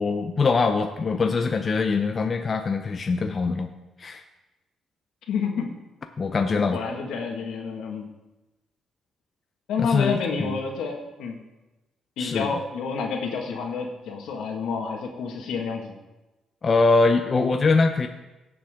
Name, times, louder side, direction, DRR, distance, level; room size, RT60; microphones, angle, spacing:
voice 1, 0.0-3.7 4.0-4.2 6.2-6.8 9.8-10.6 12.2-12.5 16.6-18.1, left 4 dB, 40° left, 6 dB, 0.7 m, -23 dB
voice 2, 5.3-5.7 6.7-8.1 9.7-11.4 12.2-15.9, left 5 dB, 80° left, 2 dB, 1.8 m, -29 dB
17.0 x 7.1 x 3.7 m, 1.1 s
cardioid pair, 90°, 0 cm